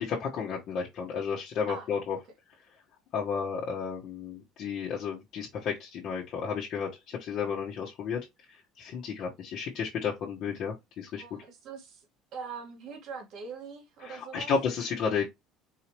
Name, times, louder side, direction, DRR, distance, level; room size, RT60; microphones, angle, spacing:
voice 1, 0.0-2.2 3.1-8.2 8.8-11.2 14.0-15.2, left 6 dB, 60° left, 1.4 m, -32 dB
voice 2, 11.1-12.1 12.3-14.5, right 5 dB, 60° right, 1.9 m, -42 dB
4.8 x 2.9 x 3.2 m
supercardioid pair, 100°, 0 cm